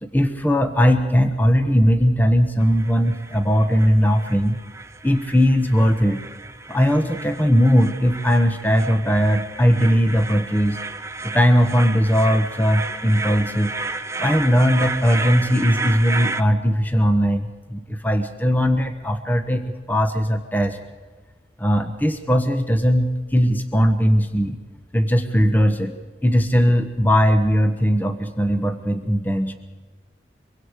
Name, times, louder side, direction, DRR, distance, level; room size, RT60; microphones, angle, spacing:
voice 1, 0.0-4.6 5.0-6.2 6.7-10.8 11.2-13.7 14.2-19.6 19.9-20.8 21.6-24.6 24.9-25.9 26.2-29.6, equal, 10° left, 7 dB, 1.1 m, -19 dB
sound 1, 2.6-16.4, right 3 dB, 15° right, 0.6 m, -32 dB
24.0 x 23.5 x 4.8 m, 1.4 s
head